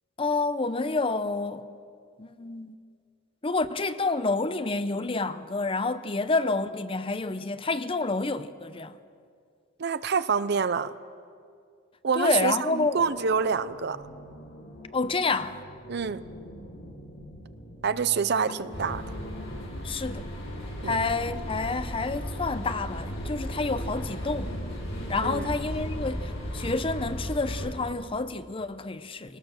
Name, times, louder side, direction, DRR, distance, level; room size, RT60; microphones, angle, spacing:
voice 1, 0.2-1.7 2.2-2.7 3.4-8.9 12.2-13.0 14.9-15.6 19.8-20.3 20.8-24.5 25.1-29.4, left 3 dB, 25° left, 0.6 m, -29 dB
voice 2, 9.8-10.9 12.0-14.0 15.9-16.2 17.8-19.0 20.8-21.0 25.2-25.5, right 6 dB, 55° right, 0.6 m, -27 dB
sound 1, 12.9-27.8, left 1 dB, 50° left, 2.2 m, -45 dB
sound 2, 18.7-27.7, equal, 75° left, 7.4 m, -35 dB
22.0 x 19.0 x 6.4 m
head